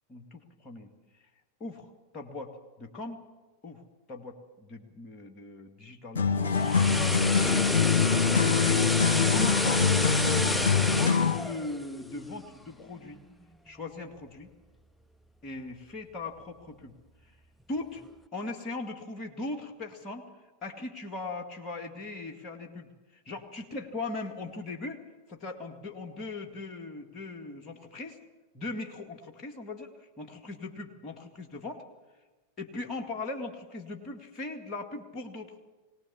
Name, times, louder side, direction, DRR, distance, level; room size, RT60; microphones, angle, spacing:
voice 1, 0.1-0.9 1.6-3.2 3.6-3.8 4.1-7.0 7.5-7.8 8.5-8.9 9.3-13.2 13.7-14.5 15.4-16.9 17.2-17.3 17.7-18.0 18.3-20.3 20.6-25.0 25.3-28.2 28.5-31.8 32.6-35.6, left 2 dB, 30° left, 3 dB, 2.0 m, -39 dB
sound 1, 6.1-11.5, left 6 dB, 65° left, 1.6 m, -24 dB
sound 2, 6.3-12.5 12.9-13.1, left 1 dB, 5° left, 0.5 m, -30 dB
21.0 x 18.5 x 7.0 m, 1.2 s
figure-of-eight pair, 90°, 0 cm